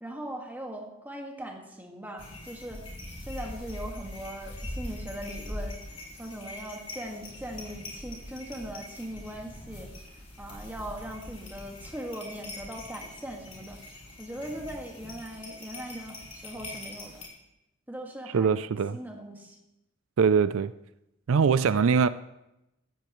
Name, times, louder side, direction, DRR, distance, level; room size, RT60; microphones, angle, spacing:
voice 1, 0.0-2.9 3.2-5.8 6.2-9.9 10.4-13.8 14.2-17.3 17.9-19.6, equal, 10° right, 1.8 m, -40 dB
sound 1, 2.2-17.3, left 1 dB, 25° left, 4.0 m, -42 dB
voice 2, 18.3-19.0 20.2-20.7 21.3-22.1, right 6 dB, 80° right, 0.4 m, -22 dB
16.5 x 13.5 x 3.1 m
head